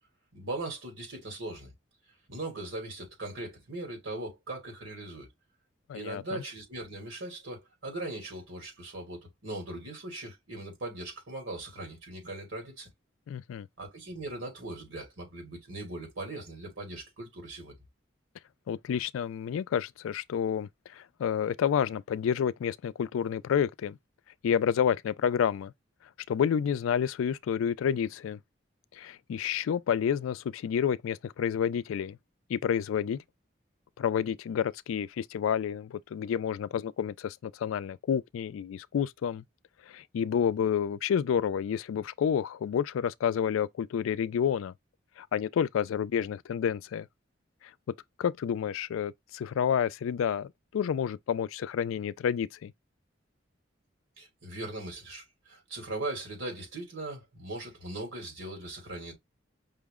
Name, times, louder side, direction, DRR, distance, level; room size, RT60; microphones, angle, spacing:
voice 1, 0.3-1.7 2.3-5.3 5.9-12.9 13.8-17.7 54.2-59.1, right 2 dB, 80° right, 2.6 m, -39 dB
voice 2, 5.9-6.4 13.3-13.7 18.7-24.0 24.4-25.7 26.3-28.4 28.9-32.2 32.5-33.2 34.0-39.4 39.9-44.7 45.2-47.1 48.2-52.7, left 8 dB, 90° left, 0.3 m, -29 dB
5.5 x 2.0 x 3.5 m
head